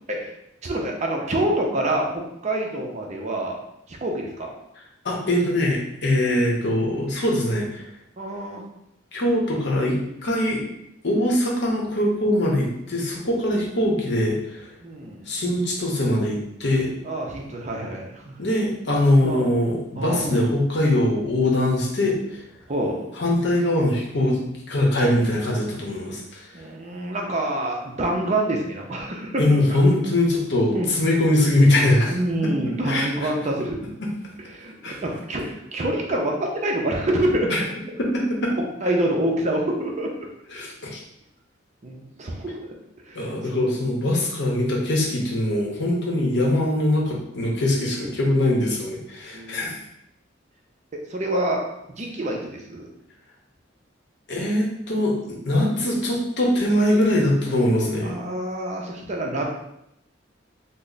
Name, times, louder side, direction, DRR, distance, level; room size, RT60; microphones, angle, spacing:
voice 1, 0.6-3.6 3.9-4.5 8.2-8.6 14.8-15.2 17.0-18.4 19.2-19.5 20.0-20.4 22.7-23.1 26.5-29.8 30.7-30.9 32.1-33.8 34.5-37.5 38.6-40.1 41.8-42.6 43.1-43.6 47.9-48.1 49.3-49.7 50.9-51.6 52.0-52.9 58.0-59.4, right 1 dB, 35° right, 0 dB, 0.5 m, -27 dB
voice 2, 5.0-7.8 9.1-10.6 11.0-14.7 15.3-16.9 18.4-22.4 23.2-26.4 29.4-32.1 32.4-32.5 32.8-33.3 34.0-34.1 34.8-35.0 37.5-37.6 38.0-38.5 40.5-41.0 43.1-49.8 54.3-58.2, left 1 dB, 60° left, -1 dB, 0.8 m, -22 dB
3.2 x 2.0 x 3.9 m, 0.80 s
head